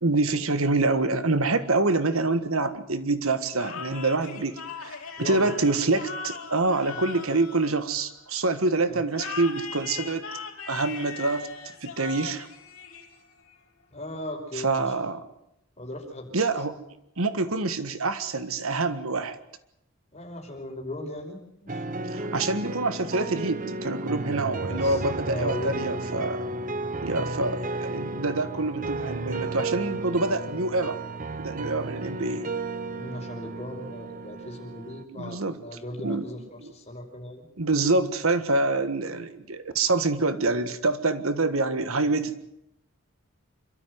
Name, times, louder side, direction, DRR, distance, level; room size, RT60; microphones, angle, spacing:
voice 1, 0.0-10.3 10.7-11.5 11.8-12.5 14.5-15.2 16.3-16.8 17.2-19.4 22.1-26.4 27.0-31.0 31.4-32.5 35.1-35.6 36.0-36.2 36.6-36.7 37.6-42.4, right 3 dB, 80° right, 11 dB, 1.6 m, -26 dB
sound 1, 3.5-8.4 9.1-13.5, left 5 dB, 80° left, 3.6 m, -39 dB
voice 2, 5.2-5.5 8.8-9.0 13.9-14.9 15.8-16.3 20.1-21.8 24.7-26.1 26.4-26.5 33.0-37.4, left 1 dB, 30° left, 1 dB, 5.2 m, -38 dB
sound 2, 21.7-35.0, right 2 dB, 40° right, 1.1 m, -33 dB
26.5 x 13.0 x 9.4 m, 0.81 s
head